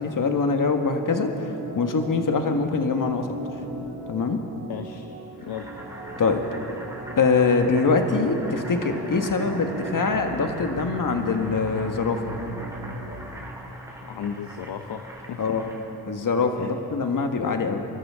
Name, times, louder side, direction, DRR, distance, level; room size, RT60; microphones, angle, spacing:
voice 1, 0.0-3.3 4.1-4.4 6.2-6.4 7.2-12.2 15.4-15.6 16.1-17.8, left 4 dB, 45° left, 5 dB, 1.6 m, -23 dB
Organ, 1.0-13.2, right 2 dB, 80° right, 3.4 m, -37 dB
voice 2, 4.7-5.1 5.4-5.7 14.0-15.0 15.3-15.6 16.5-16.7, left 8 dB, 65° left, 6 dB, 0.9 m, -35 dB
Boiling, 5.4-16.0, right 1 dB, 5° right, 3.6 m, -41 dB
25.0 x 13.0 x 3.7 m, 2.8 s
supercardioid pair, 45°, 43 cm